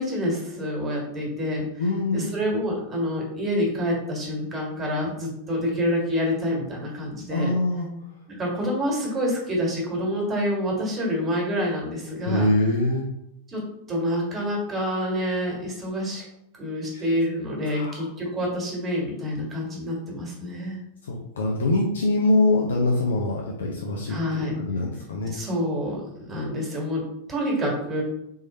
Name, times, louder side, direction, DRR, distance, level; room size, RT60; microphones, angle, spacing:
voice 1, 0.0-1.6 2.1-7.5 8.3-12.5 13.5-13.6 13.9-16.2 16.5-20.8 24.1-24.6 25.3-27.0 27.3-28.0, equal, 20° right, -1 dB, 1.6 m, -27 dB
voice 2, 1.8-2.3 7.3-7.9 12.2-13.1 16.9-17.0 17.7-18.0 21.1-25.4, left 2 dB, 65° left, -1 dB, 0.6 m, -24 dB
3.7 x 3.1 x 4.0 m, 0.80 s
figure-of-eight pair, 90°, 0 cm